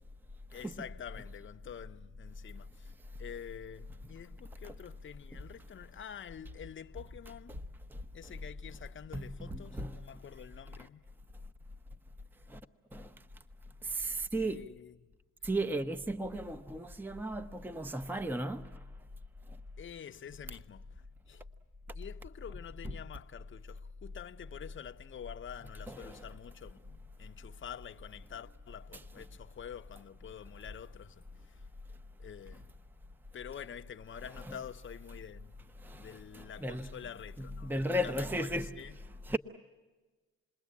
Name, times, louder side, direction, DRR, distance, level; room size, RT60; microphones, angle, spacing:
voice 1, 0.5-2.9 3.2-7.6 8.1-11.0 14.3-15.0 15.5-15.8 19.8-21.5 21.9-31.7 32.2-32.7 33.3-39.0, left 8 dB, 40° left, 0.9 m, -48 dB
voice 2, 9.1-10.2 12.5-12.6 12.9-13.1 13.8-14.7 15.4-18.8 22.8-23.0 25.9-26.3 28.9-29.2 34.3-34.6 35.8-36.9 37.4-38.8 39.2-39.4, right 1 dB, 5° right, 0.9 m, -36 dB
28.5 x 21.0 x 8.5 m
cardioid pair, 90°, 30 cm